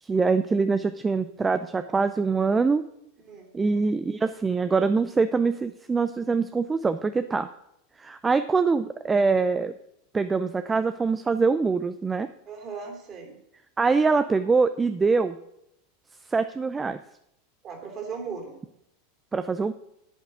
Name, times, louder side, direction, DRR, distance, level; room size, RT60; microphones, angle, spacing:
voice 1, 0.0-2.8 3.5-7.5 8.0-9.7 10.1-12.3 13.8-15.4 16.3-17.0 19.3-19.7, right 4 dB, 15° right, 11 dB, 0.5 m, -24 dB
voice 2, 12.5-13.4 17.6-18.6, right 5 dB, 35° right, 4 dB, 3.0 m, -37 dB
8.2 x 8.2 x 6.2 m, 0.78 s
hypercardioid pair, 100°, 0 cm